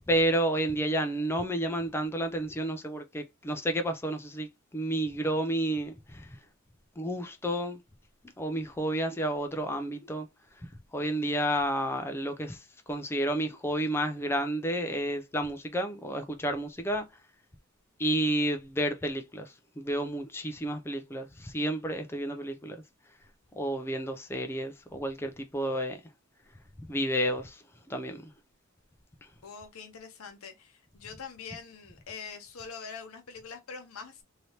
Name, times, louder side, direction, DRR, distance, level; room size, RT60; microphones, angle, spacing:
voice 1, 0.1-6.3 7.0-7.8 8.4-10.3 10.9-12.6 12.9-17.1 18.0-22.8 23.6-26.0 26.9-27.6 27.9-28.2, right 1 dB, 10° left, 0.4 m, -30 dB
voice 2, 29.4-34.2, left 5 dB, 80° left, 0.6 m, -44 dB
3.3 x 2.7 x 2.7 m
head